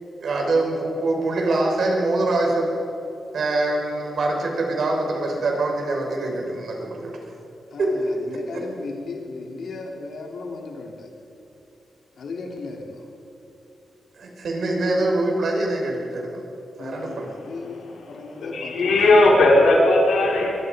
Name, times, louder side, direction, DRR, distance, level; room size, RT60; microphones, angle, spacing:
voice 1, 0.2-2.7 3.3-7.1 7.8-8.1 14.2-16.4 16.8-17.2, right 2 dB, 60° right, 0 dB, 5.6 m, -24 dB
voice 2, 7.7-11.1 12.2-13.1 16.8-19.2, left 3 dB, 65° left, 1 dB, 3.7 m, -36 dB
voice 3, 17.0-17.6 18.1-20.6, left 2 dB, 90° left, -4 dB, 5.6 m, -18 dB
23.0 x 23.0 x 5.4 m, 2.9 s
wide cardioid pair, 145°, 0 cm